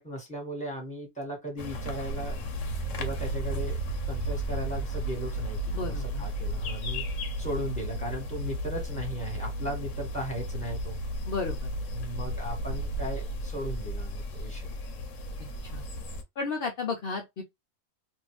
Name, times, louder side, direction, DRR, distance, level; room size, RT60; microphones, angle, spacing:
voice 1, 0.0-2.4 3.0-3.8 4.1-11.0 11.9-14.7, equal, 5° left, 1.3 m, -37 dB
sound 1, 1.6-16.2, right 1 dB, 70° left, 1.0 m, -33 dB
voice 2, 5.7-6.2 11.3-11.7 15.7-15.8 16.4-17.4, left 4 dB, 55° left, 0.7 m, -33 dB
2.7 x 2.7 x 3.1 m
omnidirectional pair, 1.4 m